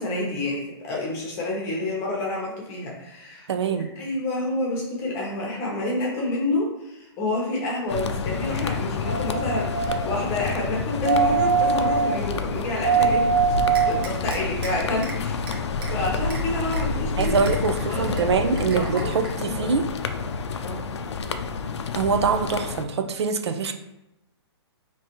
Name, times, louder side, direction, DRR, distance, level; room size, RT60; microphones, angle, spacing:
voice 1, 0.0-3.5 3.9-13.3 13.8-15.4 15.9-19.1 19.4-19.7 20.6-20.9, left 2 dB, 20° left, -2 dB, 0.9 m, -29 dB
voice 2, 3.5-3.9 17.2-19.8 21.9-23.7, right 5 dB, 75° right, 5 dB, 0.6 m, -24 dB
sound 1, 7.9-22.9, left 4 dB, 80° left, 0.5 m, -29 dB
sound 2, 9.1-10.1 11.0-12.2 12.8-14.1 14.6-14.7, right 6 dB, 20° right, 0.3 m, -22 dB
sound 3, 13.7-14.7 15.0-15.2 15.5-15.9 16.3-16.4 16.7-16.8 17.2-18.2 18.6-19.3, right 4 dB, 55° right, 1.0 m, -38 dB
4.9 x 3.0 x 3.0 m, 0.90 s
hypercardioid pair, 170°, 14 cm